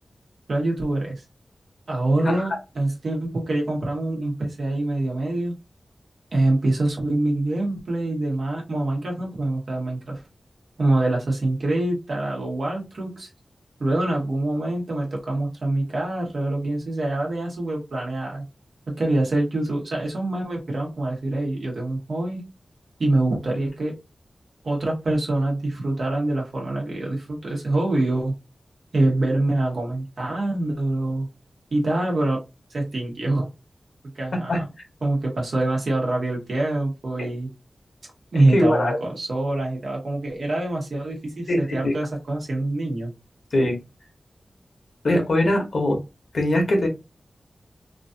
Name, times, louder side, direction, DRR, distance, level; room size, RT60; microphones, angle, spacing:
voice 1, 0.5-1.2 1.9-5.5 6.3-10.2 10.8-13.3 13.8-18.4 18.9-22.4 23.0-23.9 24.6-28.3 28.9-31.3 31.7-32.4 32.7-33.5 34.1-34.7 35.0-37.5 38.3-43.1, right 2 dB, 65° right, 1.2 m, -25 dB
voice 2, 38.3-39.0 41.5-41.6 41.8-41.9 43.5-43.8 45.0-46.0 46.3-46.9, left 1 dB, 70° left, 1.0 m, -21 dB
3.1 x 2.5 x 2.6 m
wide cardioid pair, 105°, 0 cm